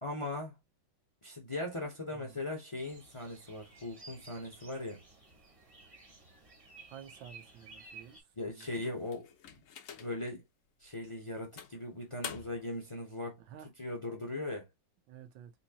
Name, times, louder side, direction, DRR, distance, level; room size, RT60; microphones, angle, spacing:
voice 1, 0.0-0.6 1.2-5.0 8.4-9.3 10.0-10.4 10.8-14.7, left 2 dB, 35° left, 0.5 m, -39 dB
voice 2, 2.1-2.4 6.9-8.2 8.5-8.7 13.5-13.7 15.1-15.5, right 9 dB, 75° right, 1.6 m, -51 dB
sound 1, 2.8-8.2, right 3 dB, 25° right, 0.7 m, -55 dB
sound 2, 8.6-10.3 10.9-11.0 11.6-12.8, left 8 dB, 65° left, 0.8 m, -47 dB
4.3 x 2.7 x 2.8 m
omnidirectional pair, 2.1 m